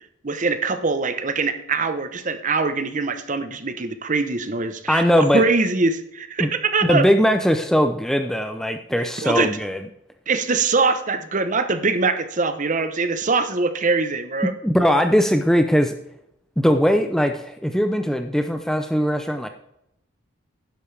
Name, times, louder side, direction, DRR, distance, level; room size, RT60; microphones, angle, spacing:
voice 1, 0.2-5.0 5.3-7.1 9.0-9.5 10.3-14.5, right 4 dB, 40° right, 10 dB, 0.8 m, -23 dB
voice 2, 4.9-5.4 6.4-6.5 6.8-9.8 14.6-16.0 16.6-19.5, equal, ahead, 7 dB, 0.5 m, -20 dB
12.0 x 10.5 x 3.3 m, 0.79 s
head